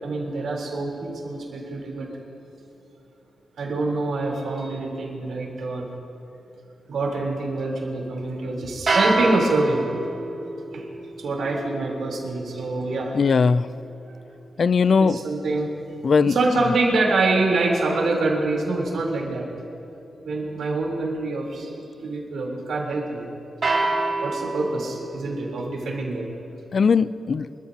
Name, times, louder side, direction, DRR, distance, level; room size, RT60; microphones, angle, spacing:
voice 1, 0.0-2.1 3.6-5.9 6.9-9.8 10.7-10.9 11.2-13.2 14.0-14.2 14.9-15.7 16.2-19.5 20.2-21.7 22.0-23.3 24.2-26.3, right 2 dB, 80° right, -2 dB, 3.5 m, -25 dB
sound 1, 8.9-15.0 23.6-25.5, right 2 dB, 40° right, 1.9 m, -28 dB
voice 2, 13.1-13.7 14.6-15.2 16.0-16.3 26.7-27.5, left 5 dB, 45° left, 16 dB, 0.3 m, -19 dB
26.0 x 14.5 x 2.8 m, 2.9 s
wide cardioid pair, 155°, 0 cm